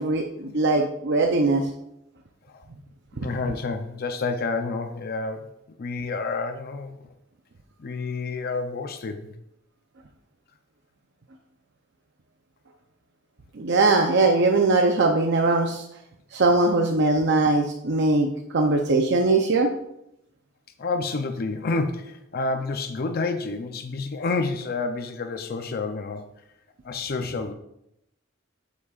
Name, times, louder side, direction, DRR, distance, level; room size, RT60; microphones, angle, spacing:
voice 1, 0.0-1.6 3.2-3.3 13.6-15.8 16.3-19.7, right 3 dB, 60° right, 4 dB, 0.6 m, -21 dB
voice 2, 3.2-5.5 5.8-7.0 7.8-9.3 20.8-26.3 26.8-27.5, left 3 dB, 50° left, 7 dB, 0.5 m, -29 dB
8.3 x 7.5 x 2.4 m, 0.80 s
head